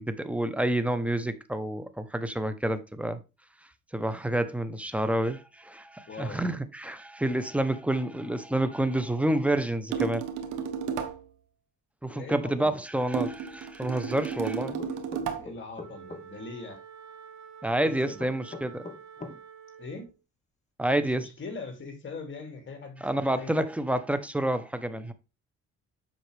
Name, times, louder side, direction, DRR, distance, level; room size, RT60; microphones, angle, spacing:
voice 1, 0.0-3.2 3.9-10.2 12.0-14.8 15.3-15.4 17.6-18.8 20.8-21.3 23.0-25.1, right 1 dB, 5° right, 1.0 m, -28 dB
voice 2, 6.1-6.4 12.1-12.8 15.4-16.8 17.8-18.2 19.8-20.1 21.0-23.5, left 3 dB, 40° left, 2.8 m, -41 dB
sound 1, 9.9-11.3 13.1-15.5, right 6 dB, 85° right, 1.4 m, -33 dB
sound 2, 14.8-16.2 17.8-19.4, left 3 dB, 25° left, 1.5 m, -41 dB
Wind instrument woodwind instrument, 15.8-20.2, right 7 dB, 65° right, 2.1 m, -48 dB
7.9 x 5.7 x 3.4 m
cardioid pair, 90°, 30 cm